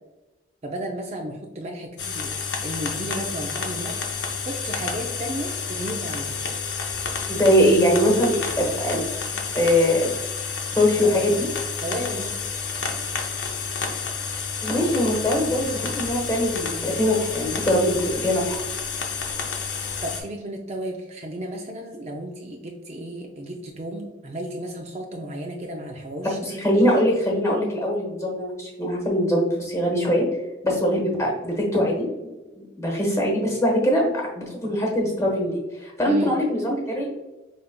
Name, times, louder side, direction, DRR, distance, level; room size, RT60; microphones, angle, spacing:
voice 1, 0.6-2.4 2.6-6.4 11.0-11.4 11.8-12.4 19.7-26.4 36.1-36.3, right 1 dB, 35° right, 1 dB, 0.4 m, -33 dB
sound 1, 2.0-20.2, left 5 dB, 70° left, 0.7 m, -30 dB
voice 2, 7.3-9.0 9.5-10.1 10.8-11.3 14.6-18.6 26.4-30.2 30.6-32.1 32.6-34.1 34.3-37.2, equal, 15° left, -1 dB, 1.1 m, -22 dB
5.1 x 3.4 x 2.2 m, 1.1 s
head